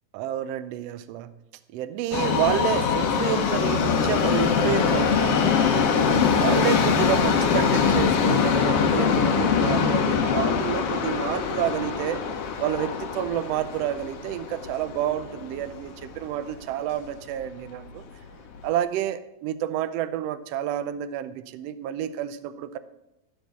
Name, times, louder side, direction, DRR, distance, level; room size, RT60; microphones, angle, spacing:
voice 1, 0.1-1.3 1.7-5.9 6.4-12.2 12.6-18.0 18.6-22.8, right 11 dB, 75° right, 12 dB, 1.5 m, -29 dB
Subway metro underground, 2.1-16.2 16.5-16.6 17.5-17.6 17.9-18.0 18.6-18.7, left 6 dB, 60° left, 1.8 m, -23 dB
13.5 x 5.3 x 6.8 m, 0.89 s
omnidirectional pair, 3.4 m